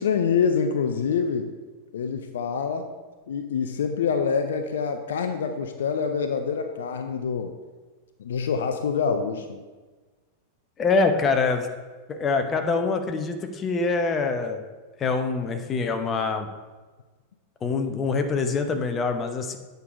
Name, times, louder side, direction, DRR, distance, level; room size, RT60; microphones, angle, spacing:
voice 1, 0.0-1.5 1.9-2.9 3.3-7.6 8.2-9.6, left 6 dB, 60° left, 7 dB, 0.4 m, -26 dB
voice 2, 10.8-11.7 12.1-14.6 15.0-16.5 17.6-19.6, left 4 dB, 25° left, 6 dB, 0.7 m, -25 dB
8.3 x 4.0 x 4.7 m, 1.3 s
figure-of-eight pair, 90°, 0 cm